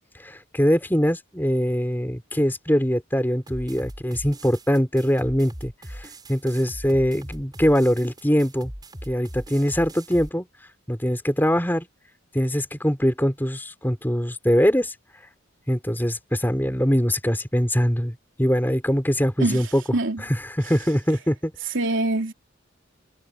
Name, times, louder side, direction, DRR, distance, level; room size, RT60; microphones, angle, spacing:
voice 1, 0.2-8.7 9.1-10.4 10.9-11.9 12.3-14.9 15.7-19.8 20.2-21.5, equal, 10° left, 3.3 m, -22 dB
sound 1, 3.5-10.3, right 1 dB, 20° right, 6.1 m, -40 dB
voice 2, 21.7-22.3, right 2 dB, 70° right, 3.3 m, -23 dB
head